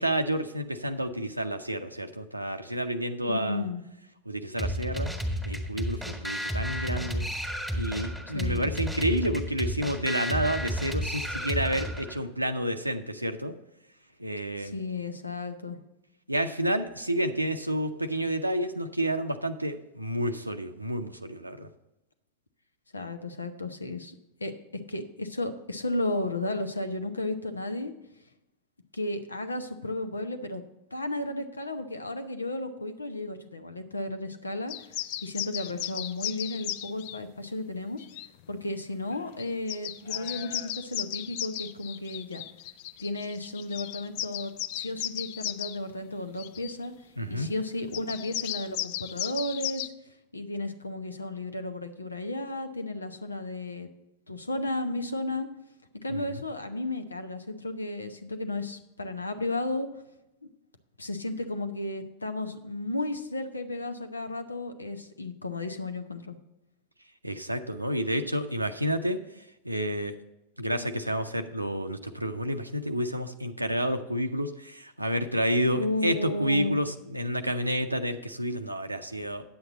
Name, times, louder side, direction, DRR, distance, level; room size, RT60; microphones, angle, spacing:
voice 1, 0.0-3.7 4.3-5.1 5.5-7.3 7.7-13.5 14.2-14.7 16.3-21.7 47.2-47.5 56.1-56.4 67.2-69.2 69.6-70.2 70.6-79.4, equal, 85° right, 6 dB, 0.6 m, -30 dB
voice 2, 3.3-3.8 8.3-8.7 14.6-15.8 22.9-27.9 28.9-30.6 30.9-34.9 35.2-38.1 38.5-42.4 43.0-46.9 47.3-49.9 50.3-53.9 54.3-55.5 56.0-59.9 61.0-66.4 70.8-70.9 75.7-76.8, left 2 dB, 80° left, 8 dB, 0.9 m, -33 dB
sound 1, 4.6-12.2, equal, 5° left, 1.6 m, -32 dB
sound 2, 34.7-37.2 38.0-38.3 39.1-39.2 39.4-45.8 46.4-46.7 47.9-49.9, left 13 dB, 50° left, 0.4 m, -35 dB
9.6 x 8.0 x 4.0 m, 0.92 s
figure-of-eight pair, 90°, 0 cm